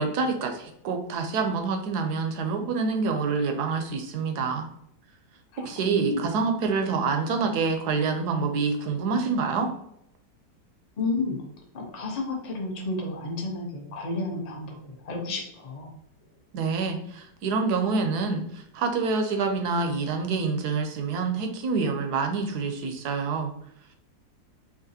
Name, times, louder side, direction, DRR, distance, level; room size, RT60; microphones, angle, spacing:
voice 1, 0.0-4.7 5.6-9.7 16.5-23.5, right 4 dB, 70° right, 5 dB, 1.1 m, -27 dB
voice 2, 5.5-6.3 11.0-11.4 11.7-15.9, left 2 dB, 35° left, 0 dB, 0.6 m, -31 dB
5.0 x 2.8 x 2.7 m, 0.75 s
omnidirectional pair, 1.9 m